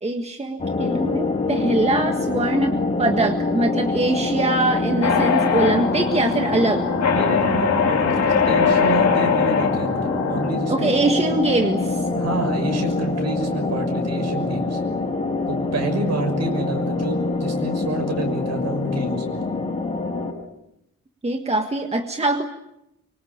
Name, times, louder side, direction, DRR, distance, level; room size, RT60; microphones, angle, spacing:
voice 1, 0.0-6.8 10.7-12.0 21.2-22.4, right 2 dB, 20° right, 4 dB, 1.6 m, -22 dB
sound 1, 0.6-20.3, left 3 dB, 20° left, 5.4 m, -25 dB
sound 2, 5.0-10.6, left 6 dB, 60° left, 2.9 m, -22 dB
voice 2, 7.1-10.9 12.1-14.8 15.5-19.4, right 2 dB, 60° right, 6 dB, 6.2 m, -28 dB
25.0 x 24.5 x 8.8 m, 0.84 s
wide cardioid pair, 160°, 30 cm